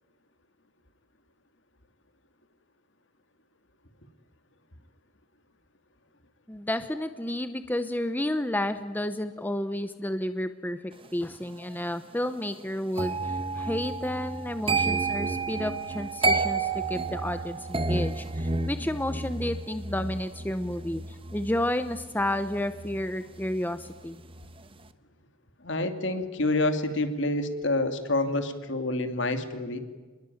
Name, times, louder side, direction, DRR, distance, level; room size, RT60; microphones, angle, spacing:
voice 1, 6.5-24.2, left 1 dB, 10° left, 10 dB, 0.8 m, -31 dB
sound 1, 13.0-23.9 24.2-24.6, right 3 dB, 25° right, 1.2 m, -31 dB
voice 2, 25.6-29.8, left 2 dB, 60° left, 7 dB, 2.6 m, -28 dB
27.5 x 21.0 x 9.3 m, 1.3 s
head